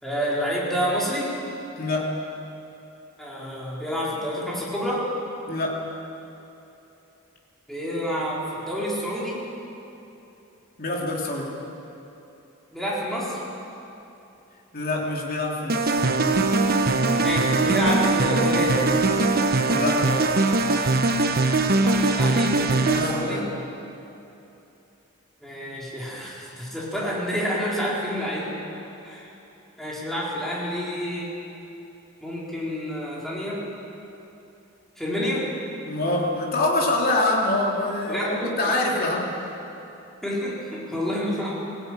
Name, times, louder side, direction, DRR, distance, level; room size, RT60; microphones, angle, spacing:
voice 1, 0.0-1.3 3.2-5.1 7.7-9.4 12.7-13.4 17.2-18.8 21.7-23.5 25.4-28.6 29.0-29.3 29.8-31.4 32.2-33.7 35.0-35.5 38.1-39.1 40.2-41.6, equal, ahead, -6 dB, 4.3 m, -28 dB
voice 2, 1.8-2.1 5.5-5.8 10.8-11.5 14.7-16.0 19.7-20.3 22.9-23.5 35.8-39.3, left 2 dB, 45° left, -2 dB, 3.1 m, -25 dB
sound 1, 15.7-23.3, right 3 dB, 45° right, 1.0 m, -21 dB
18.5 x 16.5 x 9.2 m, 2.9 s
head